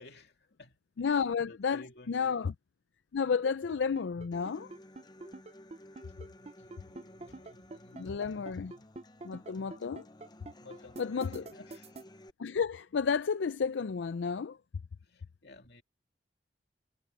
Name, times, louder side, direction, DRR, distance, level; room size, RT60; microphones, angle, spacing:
voice 1, 0.0-2.5 6.3-8.9 10.6-11.9 15.0-15.8, left 2 dB, 65° left, 2.8 m, -55 dB
voice 2, 1.0-1.8 2.1-2.5 3.1-4.7 7.9-8.7 9.2-10.1 11.0-11.4 12.4-14.6, left 6 dB, 85° left, 0.4 m, -31 dB
sound 1, 3.4-12.0, right 3 dB, 35° right, 0.6 m, -46 dB
Human voice / Acoustic guitar, 4.3-12.3, left 1 dB, 25° left, 0.7 m, -54 dB
head